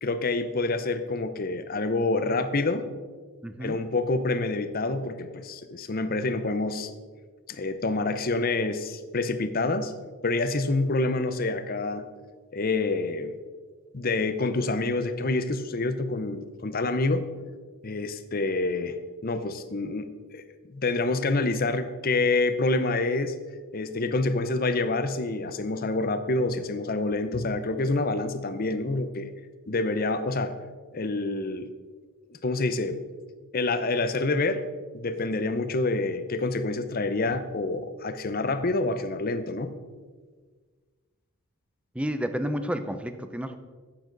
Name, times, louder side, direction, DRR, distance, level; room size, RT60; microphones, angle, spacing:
voice 1, 0.0-2.8 3.6-6.9 7.5-9.9 10.2-12.1 12.5-13.3 13.9-17.3 17.8-20.4 20.7-23.4 23.7-29.3 29.7-30.6 30.9-31.7 32.4-33.0 33.5-34.6 34.9-39.7, left 2 dB, 40° left, 10 dB, 0.7 m, -27 dB
voice 2, 3.4-3.8 41.9-43.6, equal, 5° right, 9 dB, 0.5 m, -30 dB
12.0 x 8.7 x 3.9 m, 1.5 s
head